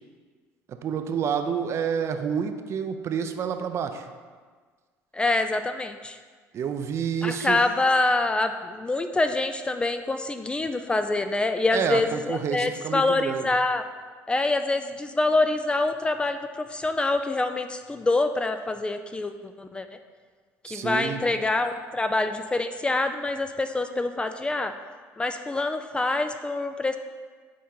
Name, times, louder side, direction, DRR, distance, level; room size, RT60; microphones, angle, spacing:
voice 1, 0.7-4.1 6.5-7.6 11.7-13.5 20.6-21.2, right 7 dB, 50° right, 8 dB, 0.5 m, -28 dB
voice 2, 5.1-6.2 7.2-13.8 14.3-19.9 20.6-24.7 25.2-27.0, left 2 dB, 15° left, 8 dB, 0.3 m, -26 dB
6.5 x 4.1 x 3.8 m, 1.5 s
supercardioid pair, 100°, 6 cm